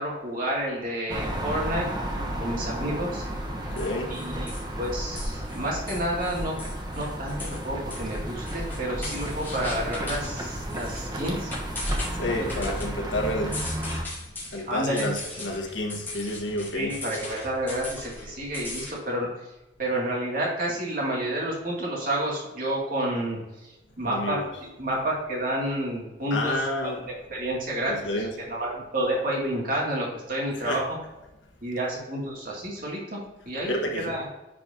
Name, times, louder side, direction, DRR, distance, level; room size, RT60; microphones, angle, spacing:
voice 1, 0.0-1.9 2.4-3.3 4.1-6.5 6.9-11.5 12.4-12.6 14.6-15.5 16.7-19.3 19.8-23.4 24.0-30.9 31.6-33.2 33.4-34.3, right 1 dB, 50° right, -3 dB, 2.4 m, -30 dB
sound 1, 1.1-14.0, right 1 dB, 20° right, 1.0 m, -33 dB
voice 2, 2.3-2.6 3.6-4.2 12.1-13.6 14.5-17.0 24.0-24.4 26.3-27.0 27.9-28.3 30.6-30.8 33.7-34.1, left 1 dB, 90° left, 1 dB, 1.3 m, -30 dB
sound 2, 3.8-18.9, left 2 dB, 10° left, 2.5 m, -40 dB
10.0 x 4.9 x 2.8 m, 1.0 s
head